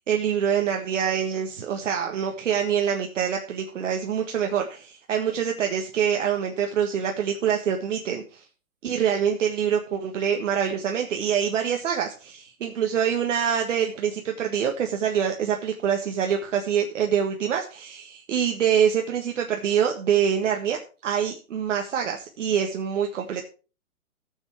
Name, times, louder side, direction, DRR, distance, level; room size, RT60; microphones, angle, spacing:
voice 1, 0.1-8.4 8.8-23.4, right 8 dB, 60° right, 3 dB, 1.6 m, -25 dB
13.5 x 7.4 x 4.5 m, 0.35 s
hypercardioid pair, 150°, 41 cm